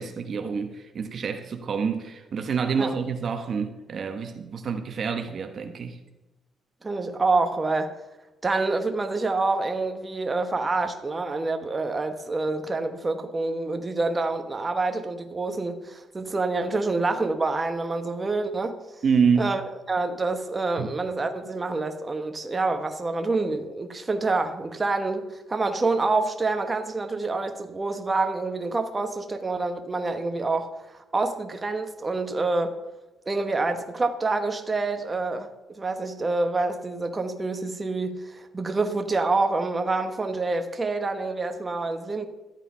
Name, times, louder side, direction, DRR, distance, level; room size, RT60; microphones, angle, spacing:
voice 1, 0.0-6.0 19.0-19.6 20.8-20.9, right 6 dB, 50° right, 1.1 m, -27 dB
voice 2, 6.8-8.0 8.4-18.8 19.4-32.8 33.3-42.3, right 3 dB, 25° right, 1.2 m, -27 dB
13.5 x 8.9 x 5.6 m
cardioid pair, 90°, 0 cm